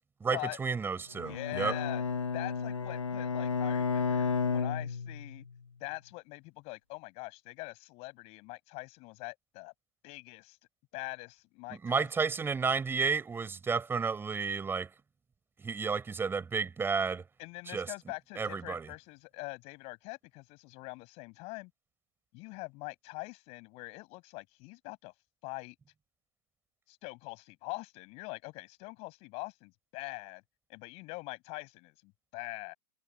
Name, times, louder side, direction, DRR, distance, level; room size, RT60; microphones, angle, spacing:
voice 1, 0.2-1.7 11.7-14.9 15.6-17.2 17.7-17.9 18.4-18.9, right 5 dB, 15° right, 6.5 m, -32 dB
Bowed string instrument, 1.1-5.5, left 5 dB, 85° left, 0.8 m, -32 dB
voice 2, 1.2-2.0 2.3-5.5 5.8-9.7 10.0-10.6 10.9-12.1 12.4-12.5 17.4-21.7 22.3-25.1 25.4-25.8 26.9-30.4 30.7-32.7, left 26 dB, 40° left, 7.8 m, -43 dB
figure-of-eight pair, 105°, 16 cm